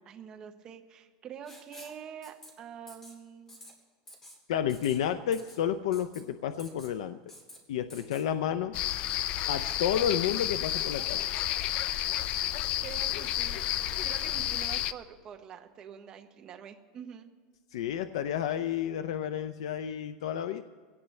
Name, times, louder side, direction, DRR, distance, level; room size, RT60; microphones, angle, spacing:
voice 1, 0.0-3.6 12.8-17.3, right 8 dB, 25° right, 5 dB, 0.9 m, -46 dB
Writing, 1.5-2.0 2.2-2.5 2.9-3.2 3.5-3.7 4.1-4.4 4.7-5.0 5.3-5.6 5.9-6.2 6.6-6.9 7.3-7.6 7.9-8.2, left 1 dB, 10° left, 1.8 m, -50 dB
voice 2, 4.5-7.2 7.7-8.8 9.5-11.2 17.7-20.6, left 9 dB, 90° left, 10 dB, 0.5 m, -31 dB
sound 1, 8.7-14.9, left 12 dB, 35° left, 0.4 m, -31 dB
22.5 x 17.0 x 3.2 m, 1.5 s
supercardioid pair, 170°, 3 cm